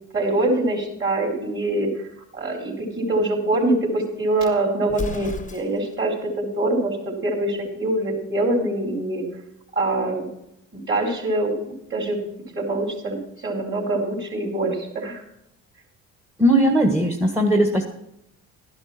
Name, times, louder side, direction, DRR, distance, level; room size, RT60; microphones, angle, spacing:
voice 1, 0.1-2.1 2.3-9.2 9.7-10.3 10.7-12.2 12.5-15.2, right 2 dB, 30° right, 0 dB, 4.4 m, -24 dB
Explosion, 4.9-6.0, left 3 dB, 20° left, 1.0 m, -33 dB
voice 2, 16.4-17.8, right 1 dB, 5° right, 5 dB, 1.5 m, -18 dB
12.5 x 10.5 x 4.3 m, 0.82 s
hypercardioid pair, 55°, 38 cm